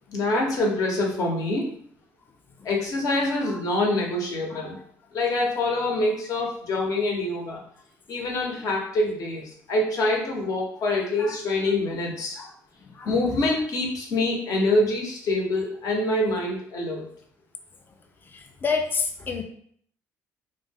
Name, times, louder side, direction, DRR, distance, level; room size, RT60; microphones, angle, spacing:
voice 1, 0.1-1.7 2.6-4.8 5.1-7.6 8.1-12.4 13.0-17.1, left 2 dB, 60° left, -1 dB, 0.8 m, -25 dB
voice 2, 18.3-19.4, left 5 dB, 30° left, 4 dB, 0.4 m, -29 dB
2.4 x 2.0 x 3.4 m, 0.63 s
cardioid pair, 90°, 7 cm